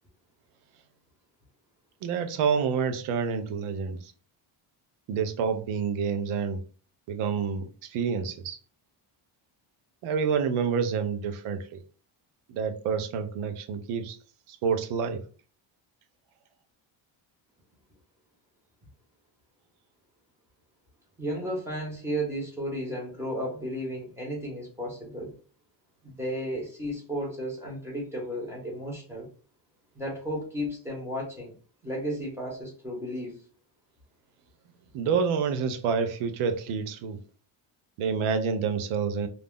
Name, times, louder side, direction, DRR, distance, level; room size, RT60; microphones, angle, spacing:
voice 1, 2.0-4.1 5.1-6.6 7.1-8.6 10.0-11.8 12.5-14.2 14.5-15.2 34.9-37.2 38.0-39.3, right 6 dB, 85° right, 0.6 m, -28 dB
voice 2, 21.2-25.3 26.0-29.3 29.9-31.5 31.8-33.4, equal, 5° right, 0.9 m, -33 dB
2.5 x 2.0 x 3.5 m
cardioid pair, 140°, 49 cm